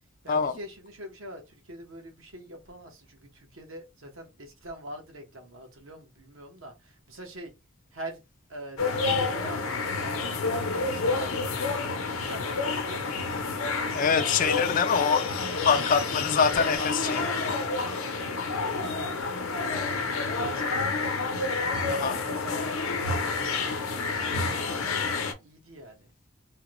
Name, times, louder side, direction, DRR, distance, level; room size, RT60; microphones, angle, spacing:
voice 1, 0.2-7.5 7.9-8.2 8.5-11.5 12.2-13.0 14.1-14.8 15.5-16.0 16.7-20.9 21.6-23.6 24.3-26.1, equal, 75° right, 1.1 m, -44 dB
sound 1, 8.8-25.3, left 4 dB, 85° left, 0.7 m, -29 dB
voice 2, 13.9-15.2 15.7-16.8 21.9-22.2, left 6 dB, 40° left, 0.3 m, -24 dB
3.5 x 2.2 x 3.0 m
head